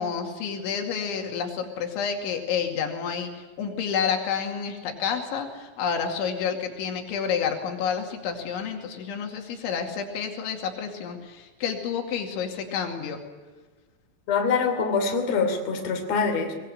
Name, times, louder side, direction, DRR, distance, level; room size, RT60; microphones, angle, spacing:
voice 1, 0.0-13.2, left 7 dB, 85° left, 3 dB, 4.8 m, -29 dB
voice 2, 14.3-16.5, left 5 dB, 40° left, 4 dB, 3.7 m, -24 dB
23.0 x 21.0 x 8.8 m, 1.3 s
omnidirectional pair, 5.3 m